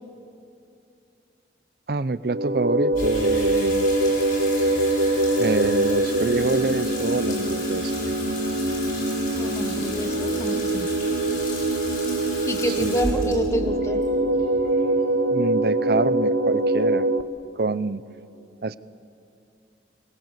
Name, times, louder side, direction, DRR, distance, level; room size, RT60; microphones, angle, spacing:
voice 1, 1.9-3.9 5.4-7.9 12.7-12.9 13.2-13.3 15.3-17.1 17.6-18.0 18.6-18.8, right 3 dB, 60° right, 16 dB, 0.6 m, -26 dB
sound 1, 2.2-17.2, right 1 dB, 80° right, 1.3 m, -24 dB
Water tap faucet / Sink (filling or washing), 2.9-15.3, left 2 dB, 55° left, 7.3 m, -35 dB
voice 2, 9.3-10.9 12.5-14.0, left 1 dB, 15° left, 7 dB, 1.5 m, -28 dB
28.5 x 22.0 x 8.2 m, 2.6 s
head